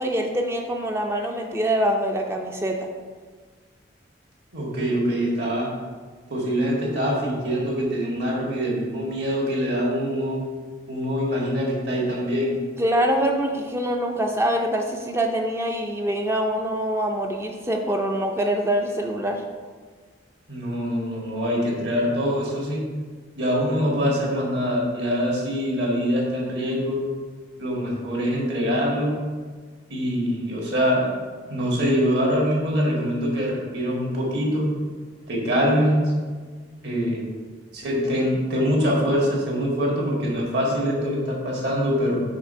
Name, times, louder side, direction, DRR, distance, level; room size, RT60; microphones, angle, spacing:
voice 1, 0.0-2.8 12.8-19.4, right 1 dB, 15° right, 2 dB, 0.4 m, -24 dB
voice 2, 4.5-5.7 6.3-10.4 10.9-12.5 20.5-22.8 23.4-27.0 27.6-29.2 29.9-31.1 31.5-34.6 35.3-36.0 36.8-37.2 37.7-42.2, equal, 65° right, -3 dB, 1.7 m, -24 dB
5.9 x 3.5 x 5.5 m, 1.5 s
head